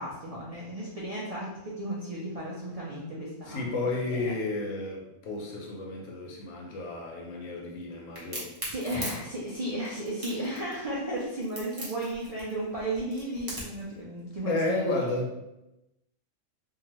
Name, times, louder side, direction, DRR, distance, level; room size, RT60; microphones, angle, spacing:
voice 1, 0.0-3.6 4.1-4.2 8.7-15.1, right 1 dB, 60° right, -5 dB, 0.3 m, -34 dB
voice 2, 3.5-8.5 14.5-15.3, left 2 dB, 75° left, 0 dB, 1.0 m, -32 dB
Crack, 8.2-13.8, right 1 dB, 20° right, 0.6 m, -39 dB
2.7 x 2.4 x 3.0 m, 0.94 s
omnidirectional pair, 1.4 m